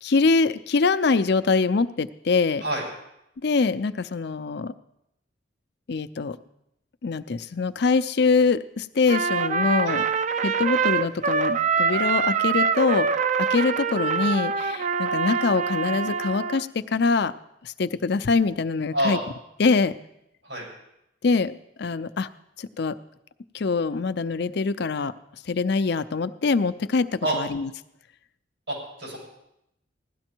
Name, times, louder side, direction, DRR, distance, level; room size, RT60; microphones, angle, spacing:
voice 1, 0.0-2.6 3.4-4.7 5.9-6.4 7.0-10.0 10.4-13.2 13.5-17.4 17.6-19.2 19.6-20.0 21.2-22.3 22.6-23.0 23.5-25.1 25.5-27.7, left 4 dB, 65° left, 12 dB, 0.6 m, -24 dB
Trumpet, 9.1-16.6, right 5 dB, 40° right, 0.5 m, -24 dB
voice 2, 28.7-29.2, right 1 dB, 90° right, -3 dB, 7.5 m, -27 dB
16.5 x 12.5 x 4.5 m, 0.82 s
head